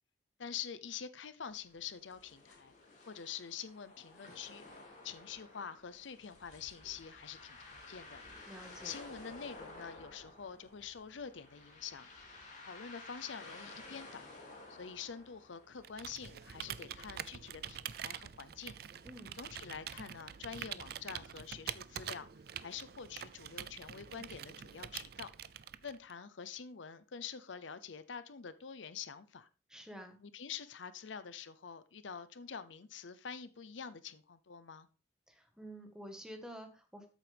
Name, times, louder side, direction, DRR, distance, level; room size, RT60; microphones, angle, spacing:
voice 1, 0.4-2.7 3.1-4.6 5.0-8.2 8.8-12.1 12.6-14.2 14.7-18.7 19.4-22.3 22.6-25.3 25.8-29.5 30.2-34.9, left 7 dB, 85° left, 0.7 m, -46 dB
sound 1, 1.5-15.9, left 2 dB, 40° left, 3.2 m, -53 dB
sound 2, 6.2-21.6, equal, 70° left, 6.0 m, -71 dB
voice 2, 8.5-9.0 19.0-19.4 29.7-30.2 35.3-37.1, equal, 5° right, 1.5 m, -49 dB
Computer keyboard, 15.8-26.1, right 9 dB, 55° right, 0.4 m, -45 dB
13.0 x 7.4 x 3.5 m
head